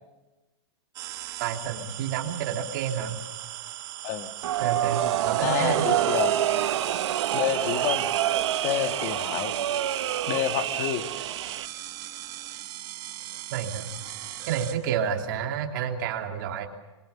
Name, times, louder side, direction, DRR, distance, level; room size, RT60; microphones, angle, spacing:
sound 1, 0.9-14.7, right 14 dB, 25° right, 1.5 m, -39 dB
voice 1, 1.4-3.2 4.6-5.0 5.2-5.8 13.5-13.9 14.5-16.7, right 8 dB, 45° right, 2 dB, 3.1 m, -29 dB
sound 2, 4.4-11.7, right 11 dB, 75° right, 1.0 m, -27 dB
voice 2, 5.4-6.3 7.3-8.1 8.6-9.5 10.3-11.1, left 10 dB, 30° left, 9 dB, 1.4 m, -28 dB
27.0 x 25.5 x 7.1 m, 1.1 s
supercardioid pair, 175°, 15 cm